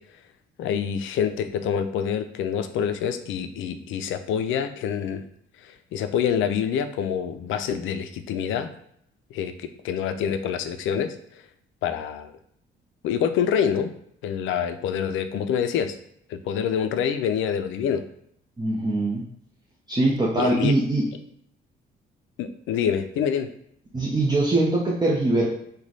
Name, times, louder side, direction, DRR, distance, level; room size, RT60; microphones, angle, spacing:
voice 1, 0.6-5.2 5.6-8.7 9.3-11.2 11.8-12.3 13.0-13.9 14.2-16.0 16.3-18.0 20.4-20.7 22.4-23.5, left 8 dB, 80° left, 10 dB, 0.4 m, -26 dB
voice 2, 18.6-19.2 19.9-21.0 23.9-25.5, right 2 dB, 20° right, -5 dB, 0.7 m, -22 dB
3.1 x 2.3 x 3.9 m, 0.69 s
cardioid pair, 90°, 20 cm